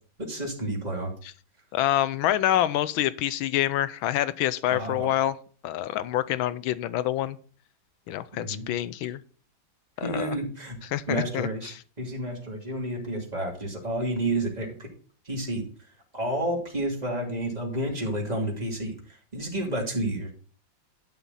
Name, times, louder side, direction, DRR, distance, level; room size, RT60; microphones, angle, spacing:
voice 1, 0.2-1.1 4.7-5.1 8.4-8.7 10.0-10.8 11.1-14.9 15.2-15.6 16.1-20.3, right 1 dB, 20° right, 2.8 m, -30 dB
voice 2, 1.7-5.4 5.6-7.4 8.1-9.2 10.0-10.4 10.9-11.7, left 13 dB, 90° left, 1.5 m, -26 dB
11.5 x 7.2 x 4.1 m
omnidirectional pair, 2.2 m